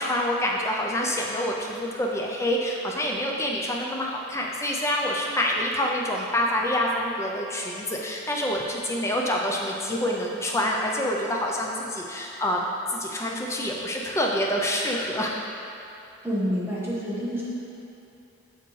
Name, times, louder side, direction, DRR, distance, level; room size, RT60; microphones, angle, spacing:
voice 1, 0.0-12.7 12.9-15.3, left 1 dB, 15° left, -1 dB, 0.4 m, -27 dB
voice 2, 16.2-17.4, equal, 10° right, -8 dB, 1.2 m, -28 dB
6.7 x 6.5 x 3.2 m, 2.8 s
head